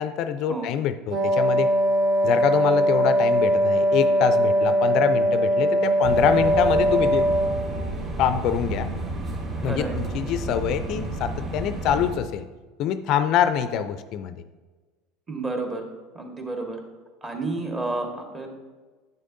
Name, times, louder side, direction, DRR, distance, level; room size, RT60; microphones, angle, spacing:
voice 1, 0.0-1.7 2.2-7.3 8.2-8.9 9.6-12.4 12.8-14.4, left 9 dB, 55° left, 12 dB, 0.3 m, -25 dB
Wind instrument woodwind instrument, 1.1-7.9, equal, 65° right, 1.7 m, -21 dB
sound 1, 6.0-12.1, right 2 dB, 40° right, 1.7 m, -31 dB
voice 2, 9.6-10.0 15.3-15.9 16.1-16.8 17.2-18.5, right 2 dB, 25° right, 2 dB, 1.5 m, -30 dB
8.7 x 6.5 x 2.6 m, 1.3 s
hypercardioid pair, 85°, 0 cm